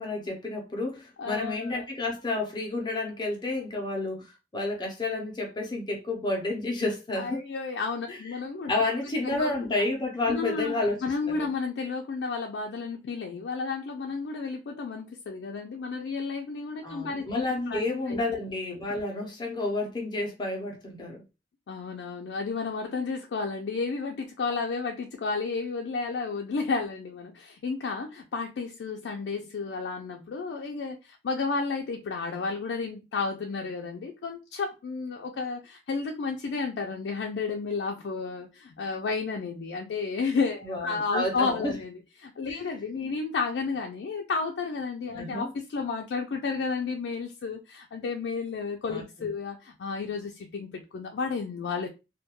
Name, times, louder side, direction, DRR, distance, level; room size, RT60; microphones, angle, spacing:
voice 1, 0.0-4.3 4.5-7.4 8.1-8.2 8.7-11.0 11.3-11.5 16.8-21.2 40.6-41.7 42.5-42.6 45.1-45.5 48.9-49.0, left 2 dB, 25° left, 0.5 m, -30 dB
voice 2, 1.2-1.8 7.2-8.7 9.2-9.7 10.3-17.8 18.1-18.2 21.7-51.9, left 4 dB, 80° left, 0.4 m, -32 dB
2.2 x 2.2 x 2.8 m
head